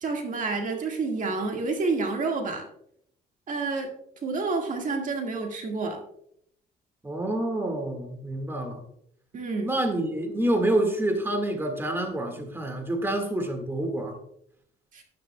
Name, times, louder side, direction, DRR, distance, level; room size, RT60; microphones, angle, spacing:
voice 1, 0.0-2.7 3.5-3.9 4.2-6.0 9.3-9.7 14.9-15.0, right 3 dB, 45° right, 3 dB, 1.8 m, -29 dB
voice 2, 7.0-8.8 9.6-14.2, right 1 dB, 10° right, 4 dB, 1.8 m, -27 dB
12.5 x 10.5 x 2.2 m, 0.72 s
cardioid pair, 120°, 18 cm